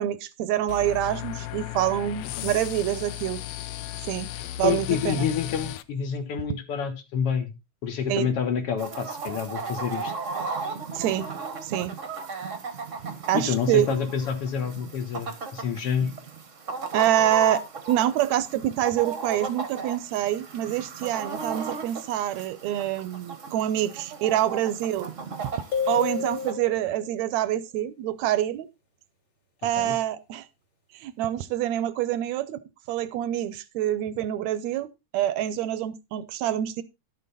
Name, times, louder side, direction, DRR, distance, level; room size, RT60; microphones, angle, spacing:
voice 1, 0.0-3.4 4.1-4.3 4.6-5.3 8.1-8.3 10.9-11.3 11.6-11.9 13.3-13.9 16.9-17.6 17.9-25.1 25.9-28.7 29.6-30.5 30.9-32.6 32.9-36.8, right 12 dB, 75° right, 1.9 m, -26 dB
sound 1, 0.7-5.8, left 14 dB, 75° left, 1.8 m, -35 dB
voice 2, 4.3-7.5 7.8-10.1 13.3-16.1 29.8-30.0, left 7 dB, 60° left, 2.1 m, -28 dB
Chicken rooster, 8.8-26.5, right 4 dB, 40° right, 1.1 m, -36 dB
sound 2, 25.7-27.2, left 6 dB, 40° left, 3.7 m, -30 dB
11.5 x 7.7 x 4.0 m
omnidirectional pair, 3.3 m